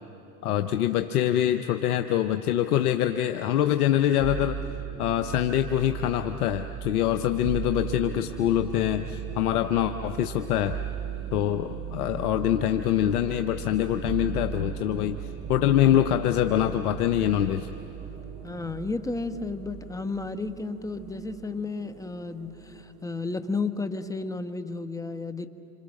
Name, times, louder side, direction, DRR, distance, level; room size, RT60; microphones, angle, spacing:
voice 1, 0.4-4.6 5.0-10.8 11.3-15.2 15.5-17.7, left 11 dB, 80° left, 8 dB, 0.9 m, -24 dB
sound 1, 4.2-21.6 22.0-22.7, right 10 dB, 20° right, 0.6 m, -38 dB
sound 2, 7.2-23.6, right 3 dB, 70° right, 2.6 m, -48 dB
voice 2, 18.4-25.5, left 3 dB, 10° left, 9 dB, 1.1 m, -33 dB
27.0 x 26.5 x 6.5 m, 3.0 s
hypercardioid pair, 90°, 44 cm